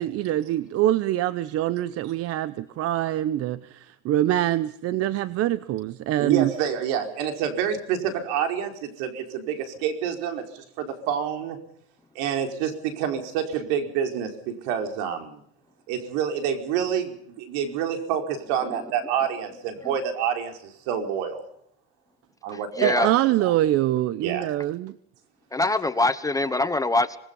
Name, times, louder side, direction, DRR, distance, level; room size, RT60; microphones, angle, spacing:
voice 1, 0.0-6.5 22.8-25.0, right 14 dB, 45° right, 15 dB, 0.9 m, -24 dB
voice 2, 6.2-11.6 12.1-15.4 15.9-21.4 22.4-23.1 23.4-23.5 24.2-24.5, right 8 dB, 65° right, 5 dB, 4.9 m, -28 dB
voice 3, 22.8-23.1 25.5-27.2, left 2 dB, 10° left, 12 dB, 1.0 m, -23 dB
26.0 x 20.0 x 5.5 m, 0.70 s
supercardioid pair, 125°, 35 cm